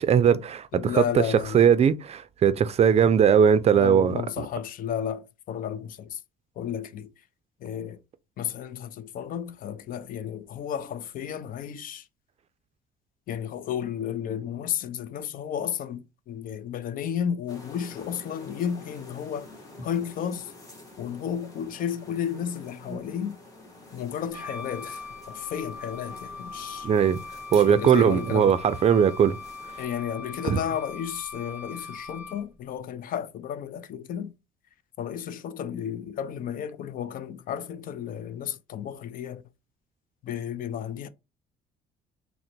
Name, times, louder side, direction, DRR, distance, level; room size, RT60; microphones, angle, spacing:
voice 1, 0.0-1.2 1.5-4.5 26.8-27.2 27.5-29.4 30.4-30.6, right 8 dB, 40° right, 0.4 m, -20 dB
voice 2, 0.7-1.7 3.7-6.2 6.6-7.1 7.6-8.0 8.4-12.1 13.3-19.5 19.8-20.5 21.0-23.4 23.9-27.0 27.5-28.6 29.8-34.3 35.0-39.4 40.2-41.1, left 9 dB, 55° left, 0.4 m, -33 dB
sound 1, 17.5-29.9, left 2 dB, 20° left, 1.5 m, -47 dB
Wind instrument woodwind instrument, 24.3-32.6, left 3 dB, 10° right, 0.8 m, -41 dB
3.8 x 2.1 x 4.4 m
cardioid pair, 110°, 17 cm